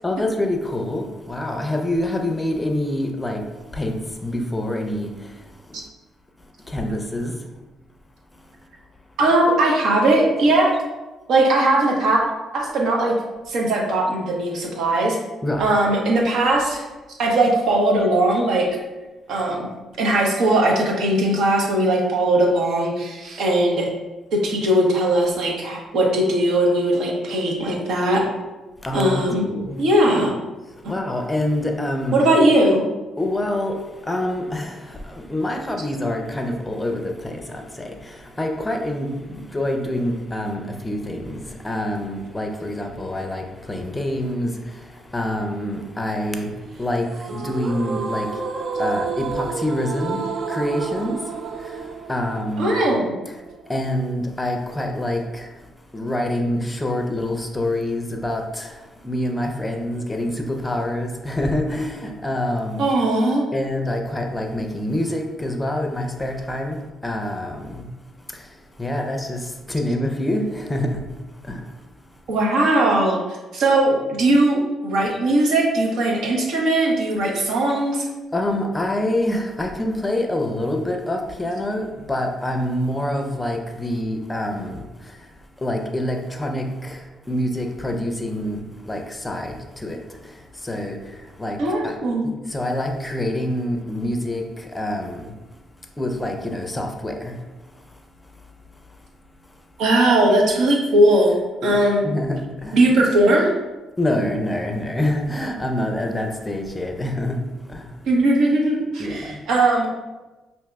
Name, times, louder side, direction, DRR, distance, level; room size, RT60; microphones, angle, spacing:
voice 1, 0.0-3.4 3.7-5.1 6.7-7.3 15.4-15.7 18.3-18.4 28.8-29.2 29.5-29.8 30.9-32.2 33.2-33.8 34.1-34.8 35.3-37.9 38.4-39.1 39.5-44.5 45.1-46.5 46.8-48.3 48.8-50.2 50.5-51.2 52.1-52.8 53.7-55.5 55.9-58.7 59.0-62.8 63.5-66.8 67.0-67.9 68.8-71.0 71.5-71.6 77.7-77.8 78.3-84.8 85.6-87.0 87.3-89.6 89.8-90.0 90.6-91.0 91.4-91.6 91.8-92.0 92.2-94.4 94.7-95.2 96.0-97.4 101.6-102.8 104.0-107.3 107.7-107.8 109.0-109.2, left 1 dB, 15° left, 3 dB, 0.5 m, -26 dB
voice 2, 9.2-10.7 11.3-12.2 12.5-13.2 13.5-15.2 15.6-16.8 17.2-18.7 19.3-19.7 20.0-23.9 24.3-28.3 28.9-29.5 29.8-30.3 32.1-32.8 52.6-53.1 62.8-63.5 72.3-73.2 73.5-78.1 91.6-92.3 99.8-101.4 101.6-102.0 102.7-103.5 108.1-109.9, right 1 dB, 75° right, -1 dB, 0.9 m, -19 dB
sound 1, 47.1-54.2, right 5 dB, 60° right, 0.4 m, -30 dB
5.9 x 2.7 x 2.3 m, 1.1 s
cardioid pair, 90°, 0 cm